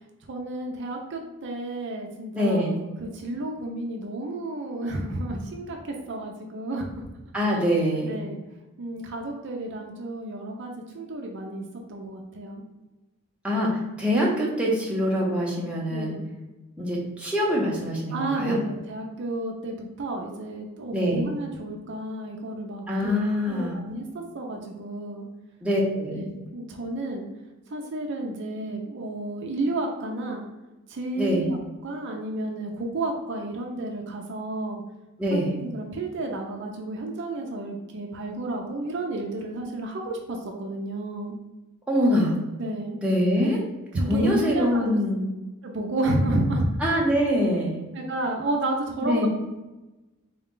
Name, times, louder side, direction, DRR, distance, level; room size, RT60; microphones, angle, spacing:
voice 1, 0.3-5.8 6.1-7.1 7.5-7.6 8.1-8.4 8.8-12.6 15.9-16.2 18.1-23.1 23.5-25.3 26.1-27.3 27.7-30.4 30.9-31.6 31.8-34.8 35.3-41.4 42.6-43.0 43.9-45.0 45.6-46.7 47.9-49.3, right 2 dB, 50° right, 1 dB, 0.5 m, -31 dB
voice 2, 2.3-2.8 7.3-8.1 13.4-13.7 14.0-16.2 16.8-18.6 20.9-21.3 22.9-23.8 25.6-26.2 31.2-31.4 35.2-35.5 41.9-42.3 43.0-43.6 43.9-45.3 46.8-47.8 49.0-49.3, equal, 5° right, -5 dB, 0.8 m, -24 dB
3.9 x 2.3 x 3.6 m, 1.1 s
head